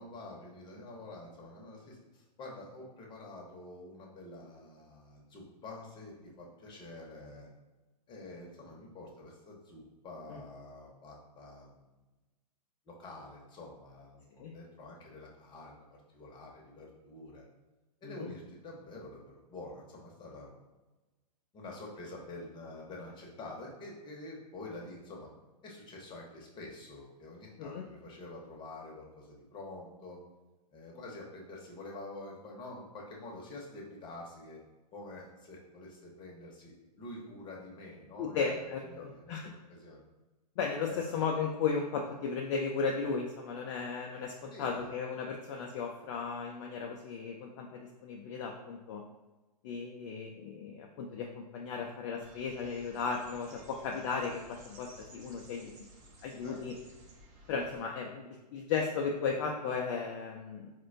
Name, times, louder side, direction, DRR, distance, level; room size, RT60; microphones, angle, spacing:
voice 1, 0.0-7.5 8.1-11.8 12.8-17.4 18.0-20.5 21.5-25.3 25.6-30.2 30.7-34.6 34.9-40.0 40.9-41.1 44.5-45.0 56.4-56.7, left 2 dB, 20° left, -2 dB, 0.8 m, -47 dB
voice 2, 38.2-39.5 40.6-49.0 49.6-55.7 56.2-56.8 57.5-60.7, left 5 dB, 45° left, 0 dB, 0.4 m, -35 dB
sound 1, 52.2-57.8, right 2 dB, 35° right, 0.7 m, -56 dB
4.2 x 2.2 x 2.5 m, 1.1 s
hypercardioid pair, 120°, 21 cm